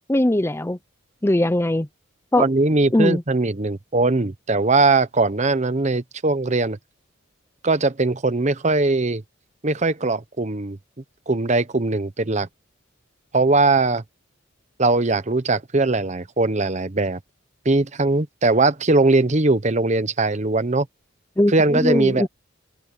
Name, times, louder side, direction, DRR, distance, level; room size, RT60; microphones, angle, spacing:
voice 1, 0.1-0.8 1.2-1.9 2.3-2.5 2.9-3.2 21.4-22.3, left 1 dB, 10° left, 0.5 m, -20 dB
voice 2, 2.4-6.8 7.6-9.2 9.6-10.8 11.3-12.5 13.3-14.0 14.8-17.2 17.6-20.9 21.5-22.3, right 3 dB, 35° right, 0.9 m, -20 dB
head